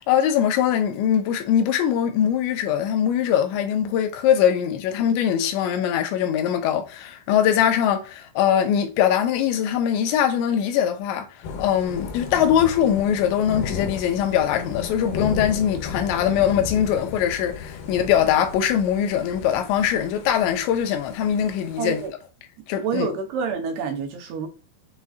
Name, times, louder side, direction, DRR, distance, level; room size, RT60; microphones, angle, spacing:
voice 1, 0.0-11.3 11.6-22.0 22.7-23.1, left 9 dB, 90° left, 3.0 m, -22 dB
Thunder / Rain, 11.4-22.1, left 6 dB, 70° left, 2.6 m, -35 dB
voice 2, 21.8-22.1 22.8-24.5, right 6 dB, 80° right, 2.6 m, -28 dB
8.1 x 2.7 x 2.4 m
omnidirectional pair, 5.0 m